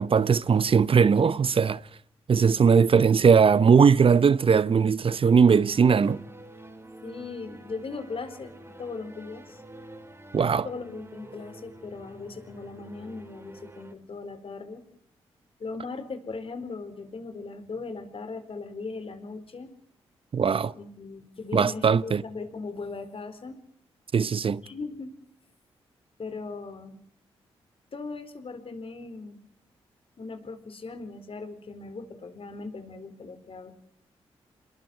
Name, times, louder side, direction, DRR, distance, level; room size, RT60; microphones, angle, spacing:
voice 1, 0.0-1.8 2.3-6.2 10.3-10.7 20.3-20.7 21.5-22.2 24.1-24.6, right 6 dB, 50° right, 0.9 m, -20 dB
sound 1, 5.3-14.0, right 1 dB, 25° right, 5.0 m, -48 dB
voice 2, 7.0-9.6 10.6-14.8 15.6-19.7 20.7-23.6 24.6-25.1 26.2-27.0 27.9-29.4 30.2-33.7, left 4 dB, 55° left, 4.5 m, -38 dB
27.5 x 22.0 x 4.5 m
supercardioid pair, 45°, 11 cm